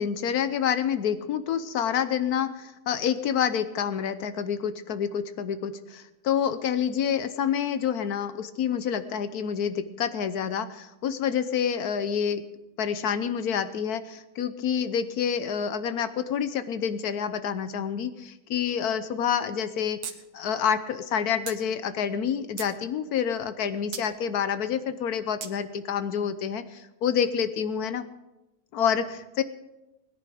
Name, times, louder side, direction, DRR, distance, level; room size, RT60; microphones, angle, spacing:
voice 1, 0.0-12.4 12.8-20.0 20.3-28.0 28.7-29.4, left 8 dB, 80° left, 12 dB, 1.3 m, -28 dB
sound 1, 20.0-20.2 20.5-20.6 21.5-21.6 22.2-22.8 23.9-24.1 25.4-25.5, right 7 dB, 85° right, 1.6 m, -36 dB
20.5 x 10.0 x 5.0 m, 0.98 s
omnidirectional pair, 1.6 m